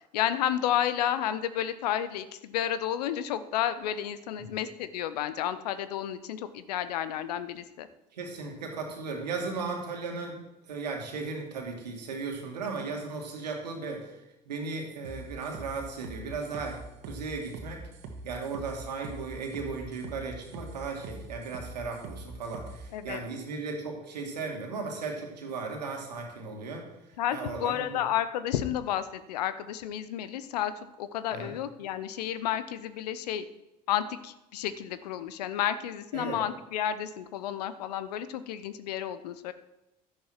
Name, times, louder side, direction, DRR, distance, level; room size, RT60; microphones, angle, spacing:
voice 1, 0.1-7.9 22.9-23.2 27.2-30.7 31.0-33.4 33.9-39.5, left 10 dB, 75° left, 13 dB, 0.9 m, -31 dB
voice 2, 8.1-10.4 10.7-14.1 14.5-17.8 18.2-26.9 27.3-28.0 31.3-31.5 36.1-36.4, right 4 dB, 80° right, 2 dB, 2.4 m, -36 dB
sound 1, 15.0-22.8, right 3 dB, 60° right, 2.0 m, -43 dB
12.0 x 10.5 x 4.5 m, 0.94 s
hypercardioid pair, 65°, 21 cm